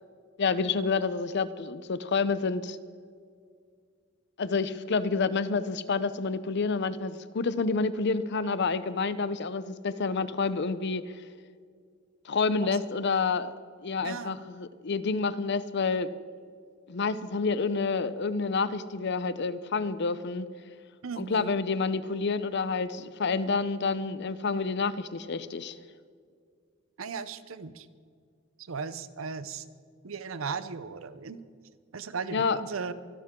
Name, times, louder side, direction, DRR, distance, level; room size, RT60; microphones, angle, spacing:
voice 1, 0.4-2.8 4.4-11.1 12.2-13.5 13.8-16.1 16.9-20.5 21.2-25.8 32.3-32.6, left 4 dB, 60° left, 14 dB, 0.6 m, -28 dB
voice 2, 14.0-14.3 21.0-21.6 27.0-27.9 28.6-29.7 30.0-31.4 31.9-32.9, right 5 dB, 80° right, 14 dB, 0.7 m, -36 dB
24.0 x 12.0 x 3.7 m, 2.1 s
head